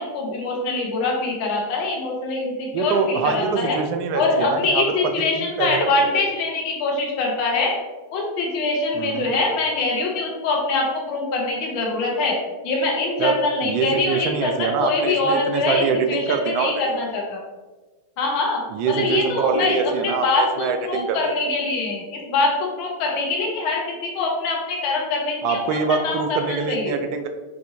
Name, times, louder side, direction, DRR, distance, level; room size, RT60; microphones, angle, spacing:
voice 1, 0.0-3.8 4.1-7.7 8.1-12.4 12.6-16.2 16.4-17.4 18.2-26.9, left 3 dB, 45° left, -2 dB, 0.9 m, -24 dB
voice 2, 2.7-4.8 5.2-6.2 9.0-9.3 13.2-13.4 13.6-16.7 18.7-21.2 25.4-27.3, right 5 dB, 45° right, 6 dB, 0.3 m, -24 dB
4.1 x 2.5 x 2.6 m, 1.2 s
figure-of-eight pair, 90°, 0 cm